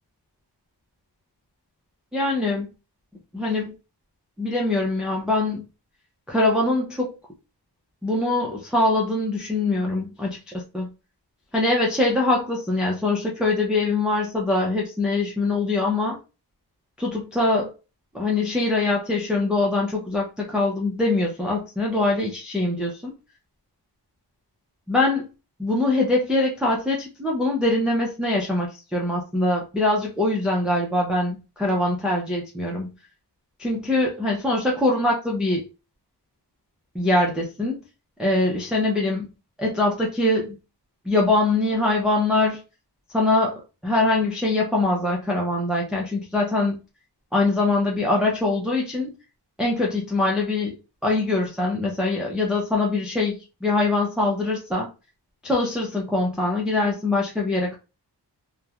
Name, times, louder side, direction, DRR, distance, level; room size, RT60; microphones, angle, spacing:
voice 1, 2.1-2.7 3.3-3.7 4.4-5.7 6.3-7.1 8.0-10.9 11.5-16.2 17.0-17.7 18.1-23.1 24.9-25.3 25.6-32.9 33.6-35.6 36.9-37.8 38.2-39.3 39.6-40.5 41.1-42.6 43.1-46.8 47.3-49.1 49.6-50.7 51.0-54.9 55.4-57.8, left 2 dB, ahead, -2 dB, 0.5 m, -23 dB
2.9 x 2.1 x 2.3 m, 0.30 s
wide cardioid pair, 135°, 41 cm